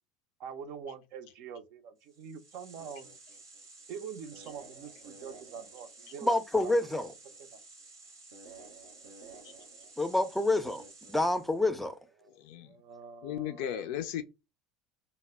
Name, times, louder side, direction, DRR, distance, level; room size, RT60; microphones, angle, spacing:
voice 1, 0.4-3.1 3.9-7.0 7.4-7.6 12.2-13.6, right 6 dB, 60° right, 0.4 m, -45 dB
sound 1, 2.1-11.7, right 3 dB, 85° right, 0.8 m, -52 dB
voice 2, 6.2-7.1 10.0-10.8 11.1-12.0, left 2 dB, 5° left, 0.4 m, -27 dB
voice 3, 12.4-12.7 13.2-14.2, left 10 dB, 65° left, 0.4 m, -36 dB
2.0 x 2.0 x 3.4 m
hypercardioid pair, 75°, 2 cm